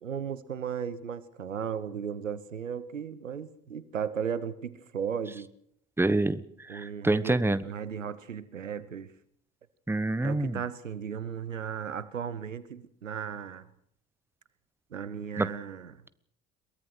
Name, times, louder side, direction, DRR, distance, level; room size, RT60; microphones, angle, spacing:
voice 1, 0.0-5.5 6.7-9.1 10.2-13.7 14.9-16.0, right 7 dB, 85° right, 17 dB, 1.0 m, -36 dB
voice 2, 6.0-6.4 6.7-7.6 9.9-10.6 15.4-15.5, right 2 dB, 5° right, 16 dB, 1.1 m, -26 dB
22.5 x 18.5 x 6.3 m, 0.69 s
figure-of-eight pair, 55°, 38 cm